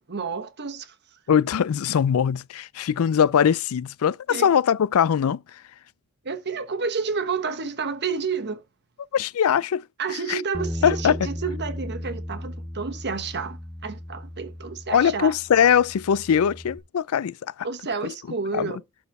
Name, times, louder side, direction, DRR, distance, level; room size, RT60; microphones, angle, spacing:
voice 1, 0.1-0.9 4.3-4.5 6.2-8.6 10.0-15.3 17.6-18.8, right 5 dB, 50° right, 1.1 m, -30 dB
voice 2, 1.3-5.4 9.1-9.8 10.3-10.4 10.8-11.1 14.9-17.7 18.5-18.8, left 8 dB, 70° left, 0.4 m, -21 dB
Bass guitar, 10.5-16.8, left 1 dB, 5° right, 1.0 m, -36 dB
12.0 x 4.2 x 4.2 m
head